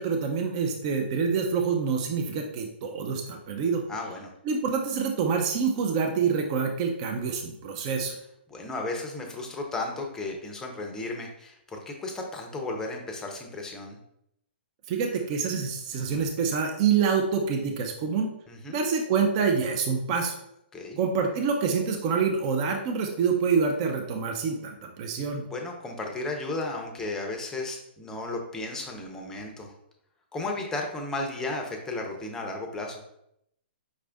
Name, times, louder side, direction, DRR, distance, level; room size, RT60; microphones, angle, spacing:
voice 1, 0.0-3.8 4.4-8.2 14.9-18.3 18.7-20.3 21.0-25.4, right 5 dB, 35° right, 3 dB, 0.6 m, -26 dB
voice 2, 3.9-4.3 8.5-14.0 18.5-18.8 20.7-21.0 25.5-29.7 30.3-33.0, left 2 dB, 10° left, 1 dB, 0.6 m, -34 dB
5.3 x 2.4 x 3.4 m, 0.77 s
hypercardioid pair, 150°, 6 cm